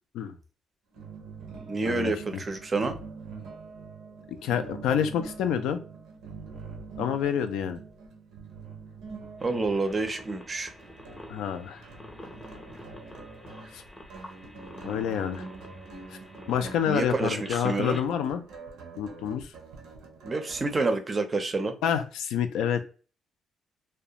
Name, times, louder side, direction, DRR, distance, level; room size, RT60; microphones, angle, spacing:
sound 1, 0.9-20.7, right 4 dB, 90° right, 0.5 m, -45 dB
voice 1, 1.7-3.0 9.4-10.7 16.9-18.0 20.2-21.7, right 3 dB, 30° right, 7 dB, 0.4 m, -28 dB
voice 2, 4.4-5.8 7.0-7.8 11.3-11.8 13.7-13.8 14.8-15.5 16.1-16.2 16.5-18.4 19.0-19.5 21.8-22.8, left 8 dB, 90° left, 8 dB, 0.3 m, -28 dB
sound 2, 9.4-18.0, left 1 dB, 20° left, 0.6 m, -47 dB
2.3 x 2.1 x 2.7 m, 0.37 s
cardioid pair, 90°, 0 cm